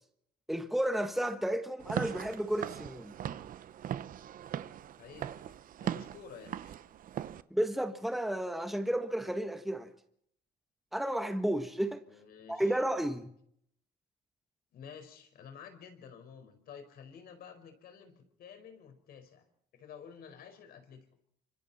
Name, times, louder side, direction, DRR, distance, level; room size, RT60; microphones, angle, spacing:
voice 1, 0.5-3.1 7.5-9.9 10.9-12.0 12.5-13.3, right 1 dB, ahead, 1.5 m, -32 dB
Walk footsteps / Siren, 1.8-7.4, right 10 dB, 55° right, 0.9 m, -39 dB
voice 2, 5.0-6.8 12.1-12.8 14.7-19.4 19.7-21.1, left 7 dB, 65° left, 4.9 m, -51 dB
27.5 x 25.0 x 4.2 m
cardioid pair, 110°, 17 cm